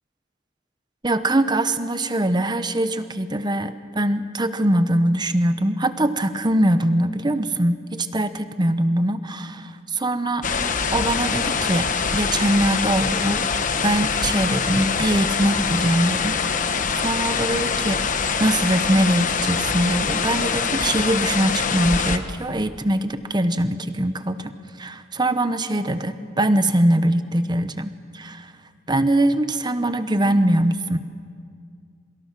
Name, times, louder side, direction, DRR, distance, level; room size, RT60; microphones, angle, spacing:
voice 1, 1.0-10.5 10.9-13.5 13.8-18.0 18.4-24.5 24.8-28.5 28.9-31.0, right 1 dB, 25° right, 11 dB, 1.0 m, -22 dB
sound 1, 10.4-22.2, left 5 dB, 45° left, 1.1 m, -24 dB
27.0 x 24.0 x 6.2 m, 2.2 s
head